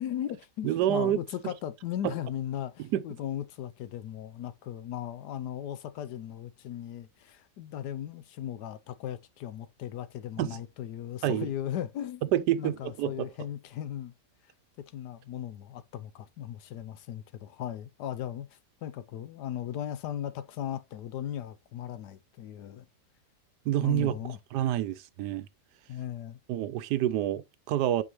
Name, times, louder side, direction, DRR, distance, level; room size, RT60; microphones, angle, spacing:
voice 1, 0.0-12.2 12.6-14.1 14.9-22.9 23.8-24.4 25.9-26.4, left 11 dB, 75° left, 1.2 m, -37 dB
voice 2, 0.6-1.2 2.0-2.1 2.9-3.0 10.4-10.6 11.2-11.5 12.3-13.3 23.7-24.2 24.5-25.5 26.5-28.0, right 12 dB, 75° right, 1.2 m, -27 dB
8.3 x 4.9 x 3.0 m
omnidirectional pair, 1.8 m